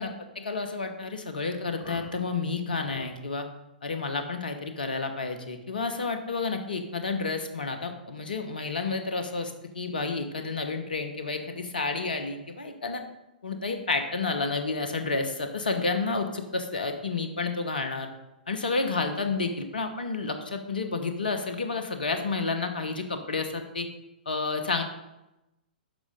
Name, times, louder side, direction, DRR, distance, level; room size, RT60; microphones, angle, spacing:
voice 1, 0.0-3.5 3.8-13.0 13.4-18.1 18.5-23.9 24.3-24.8, left 4 dB, 70° left, 7 dB, 1.1 m, -30 dB
10.5 x 6.5 x 3.7 m, 0.95 s
figure-of-eight pair, 110°, 5 cm